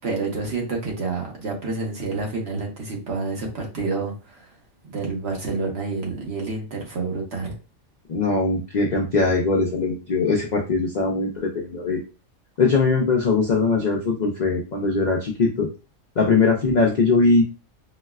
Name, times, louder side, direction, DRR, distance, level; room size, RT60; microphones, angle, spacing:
voice 1, 0.0-4.5 4.9-7.6, right 3 dB, 55° right, 0 dB, 1.1 m, -28 dB
voice 2, 8.1-12.0 12.6-15.7 16.2-17.4, left 3 dB, 60° left, 0 dB, 0.4 m, -21 dB
3.9 x 2.0 x 2.3 m, 0.31 s
omnidirectional pair, 1.4 m